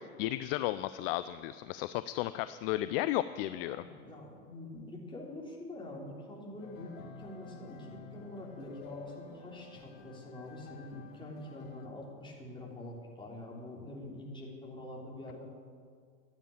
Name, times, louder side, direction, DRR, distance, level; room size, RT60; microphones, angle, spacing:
voice 1, 0.2-3.8, left 15 dB, 45° left, 14 dB, 0.4 m, -33 dB
voice 2, 3.7-15.5, left 1 dB, 10° left, -3 dB, 3.4 m, -45 dB
sound 1, 6.6-11.9, left 5 dB, 60° left, 1.6 m, -51 dB
12.0 x 9.1 x 8.8 m, 2.1 s
hypercardioid pair, 100°, 43 cm